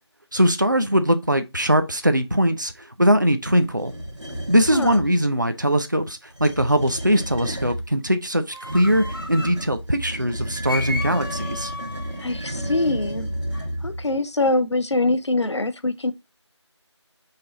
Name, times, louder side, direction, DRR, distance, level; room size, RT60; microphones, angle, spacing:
voice 1, 0.3-2.7 3.0-3.9 4.5-11.7, equal, 40° right, 0.5 m, -21 dB
sound 1, 3.8-5.1 6.2-7.9 8.6-14.2, equal, 80° right, 1.8 m, -32 dB
voice 2, 4.7-5.0 12.2-13.3 13.5-16.1, left 2 dB, 70° left, 0.6 m, -24 dB
sound 2, 8.5-9.7 10.7-13.7, left 2 dB, 50° left, 0.9 m, -35 dB
5.6 x 3.4 x 2.6 m
figure-of-eight pair, 175°, 15 cm